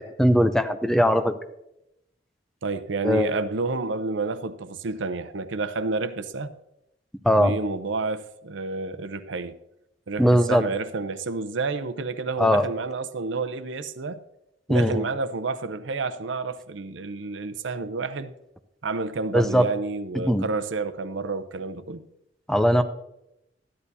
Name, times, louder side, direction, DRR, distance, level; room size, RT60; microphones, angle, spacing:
voice 1, 0.2-1.3 3.0-3.3 7.2-7.5 10.2-10.6 12.4-12.6 14.7-15.0 19.3-19.6 20.2-20.4 22.5-22.8, equal, 5° left, 0.5 m, -19 dB
voice 2, 2.6-6.5 7.4-9.6 10.1-14.2 14.7-18.3 18.8-22.0, right 3 dB, 80° right, 0.6 m, -30 dB
13.5 x 10.5 x 2.7 m
head